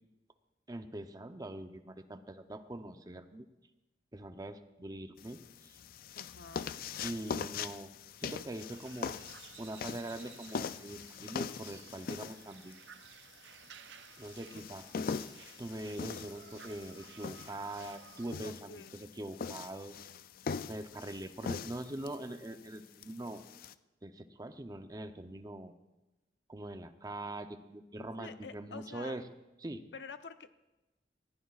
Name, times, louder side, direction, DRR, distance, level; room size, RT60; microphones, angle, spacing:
voice 1, 0.7-3.5 4.1-5.8 7.0-7.9 8.2-9.2 9.6-12.8 14.2-14.9 15.6-18.8 19.2-20.0 20.7-23.4 24.0-25.7 26.5-29.2 29.6-29.8, right 1 dB, 20° right, 8 dB, 0.6 m, -43 dB
sound 1, 5.2-23.7, left 6 dB, 55° left, 0.4 m, -42 dB
voice 2, 6.2-6.8 18.4-19.0 28.2-29.2 29.9-30.5, left 4 dB, 80° left, 10 dB, 0.7 m, -48 dB
sound 2, 8.7-18.4, right 9 dB, 85° right, 0.5 m, -56 dB
19.5 x 15.0 x 2.4 m, 1.0 s
head